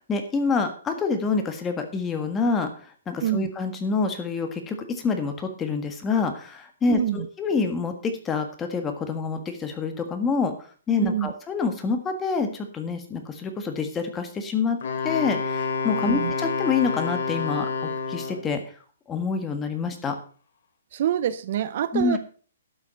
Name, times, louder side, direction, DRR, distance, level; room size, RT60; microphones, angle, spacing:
voice 1, 0.1-2.7 3.1-14.8 15.0-18.6 19.1-20.1 21.9-22.2, left 4 dB, 10° left, 6 dB, 1.5 m, -27 dB
voice 2, 6.9-7.3 11.0-11.3 16.1-16.3 20.9-22.2, right 11 dB, 45° right, 15 dB, 0.6 m, -26 dB
Wind instrument woodwind instrument, 14.8-18.5, left 4 dB, 55° left, 2.9 m, -28 dB
12.0 x 7.0 x 5.7 m, 0.41 s
hypercardioid pair, 165°, 0 cm